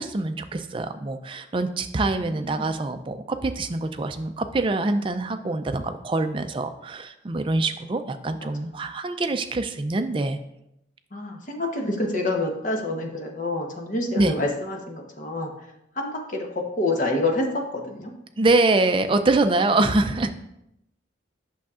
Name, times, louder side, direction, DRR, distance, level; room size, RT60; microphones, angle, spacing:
voice 1, 0.0-10.4 14.2-14.3 18.4-20.3, right 2 dB, 25° right, 8 dB, 0.4 m, -24 dB
voice 2, 2.1-2.8 8.4-8.5 11.1-15.5 15.9-18.1, left 2 dB, 45° left, 2 dB, 1.0 m, -28 dB
8.4 x 6.3 x 2.4 m, 0.82 s
head